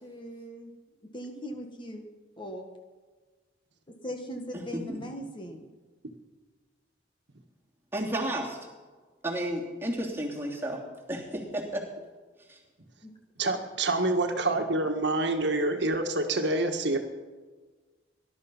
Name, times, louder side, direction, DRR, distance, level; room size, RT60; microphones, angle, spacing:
voice 1, 0.0-0.7 1.1-2.0 2.4-2.7 3.9-5.7 13.0-13.1, equal, 25° left, 3 dB, 1.6 m, -39 dB
voice 2, 4.5-5.0 7.9-8.6 9.2-10.8 11.1-11.8 12.5-12.6, right 1 dB, 10° right, -3 dB, 3.0 m, -32 dB
voice 3, 13.4-17.0, right 2 dB, 65° right, 4 dB, 1.6 m, -27 dB
19.0 x 12.0 x 5.6 m, 1.4 s
head